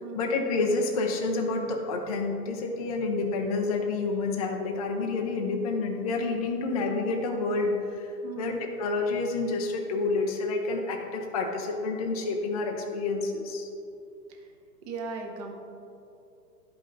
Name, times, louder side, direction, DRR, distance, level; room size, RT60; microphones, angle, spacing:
voice 1, 0.1-13.7, left 3 dB, 25° left, 2 dB, 0.4 m, -29 dB
voice 2, 14.8-15.5, right 4 dB, 25° right, 3 dB, 0.8 m, -37 dB
11.5 x 5.4 x 3.8 m, 2.6 s
hypercardioid pair, 140°, 48 cm